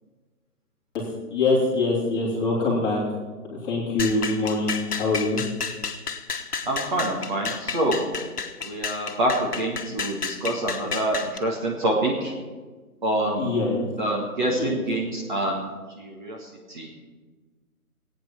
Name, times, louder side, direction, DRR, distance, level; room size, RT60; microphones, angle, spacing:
voice 1, 1.3-3.0 3.6-5.4 13.4-13.9 14.4-14.8, left 3 dB, 10° left, -7 dB, 2.6 m, -24 dB
sound 1, 4.0-11.4, left 5 dB, 90° left, 1.2 m, -31 dB
voice 2, 6.7-8.1 8.6-12.3 13.0-13.5 14.0-16.9, right 1 dB, 30° right, -1 dB, 1.7 m, -26 dB
16.0 x 9.2 x 6.0 m, 1.4 s
hypercardioid pair, 160°, 45 cm